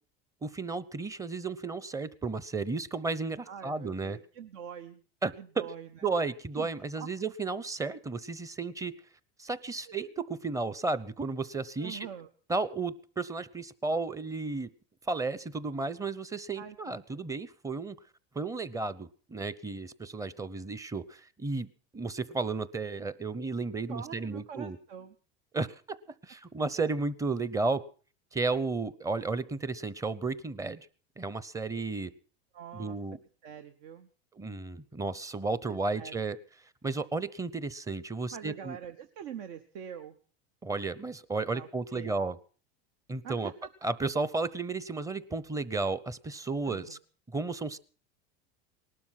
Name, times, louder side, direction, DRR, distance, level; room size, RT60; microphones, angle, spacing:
voice 1, 0.4-4.2 5.2-5.6 6.0-8.9 9.4-12.1 12.5-14.7 15.1-18.0 18.3-21.7 21.9-24.8 25.5-25.7 26.2-27.8 28.3-30.9 31.2-32.1 32.7-33.2 34.3-36.4 36.8-38.8 40.6-42.4 43.1-43.5 43.8-47.0 47.3-47.8, right 3 dB, 10° right, 17 dB, 0.8 m, -33 dB
voice 2, 3.5-5.0 5.4-6.1 6.6-6.7 6.9-7.1 9.9-10.1 11.8-12.3 16.6-16.7 17.1-17.3 23.9-25.1 32.5-33.0 33.4-34.1 35.7-36.3 38.3-40.1 41.5-42.1 43.2-43.5 46.6-47.0, right 8 dB, 70° right, 9 dB, 1.2 m, -44 dB
19.0 x 12.5 x 5.9 m, 0.40 s
supercardioid pair, 125°, 30 cm